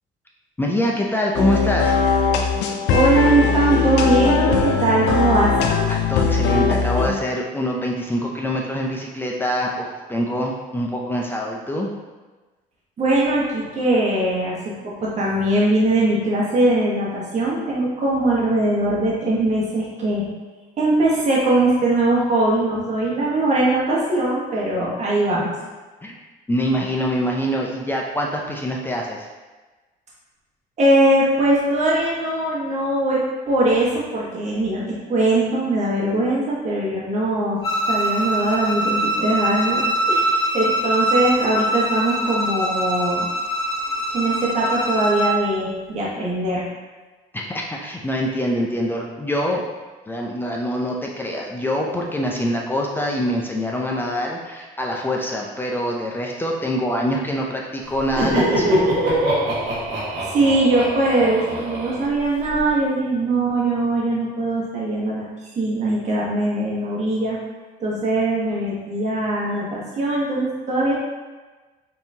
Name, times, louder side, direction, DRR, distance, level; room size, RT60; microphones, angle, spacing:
voice 1, 0.6-1.9 5.9-11.9 26.0-26.1 26.5-29.3 47.3-49.6 50.1-58.8, equal, 10° left, -1 dB, 0.5 m, -24 dB
sound 1, 1.3-7.1, left 5 dB, 90° left, 0.5 m, -20 dB
voice 2, 2.9-5.5 5.9-6.0 13.0-14.6 14.8-20.3 20.8-25.5 30.8-37.6 37.9-43.2 44.1-46.7 60.2-65.2 65.5-67.4 67.8-70.9, right 2 dB, 45° right, -5 dB, 1.2 m, -21 dB
Bowed string instrument, 37.6-45.4, right 1 dB, 35° left, 1.4 m, -23 dB
Laughter, 57.9-62.6, right 1 dB, 75° right, 1.4 m, -23 dB
5.4 x 2.9 x 2.7 m, 1.2 s
cardioid pair, 110°, 17 cm